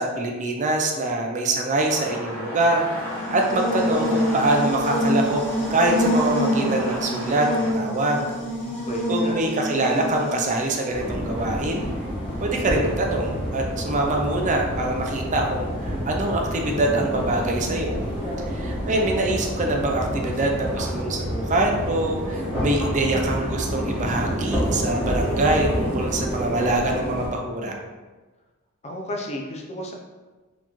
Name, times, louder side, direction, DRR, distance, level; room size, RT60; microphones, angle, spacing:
voice 1, 0.0-5.4 5.7-8.2 9.1-11.8 12.4-18.0 18.5-27.7, right 2 dB, 35° right, 1 dB, 0.5 m, -24 dB
sound 1, 1.8-7.7, equal, 10° left, 1.3 m, -34 dB
Buzz, 2.9-11.1, equal, 90° left, 1.5 m, -26 dB
voice 2, 8.6-9.4 28.8-29.9, equal, 30° left, 1 dB, 0.5 m, -33 dB
sound 2, 10.9-27.3, equal, 5° right, 1.1 m, -28 dB
4.2 x 2.9 x 2.9 m, 1.3 s
head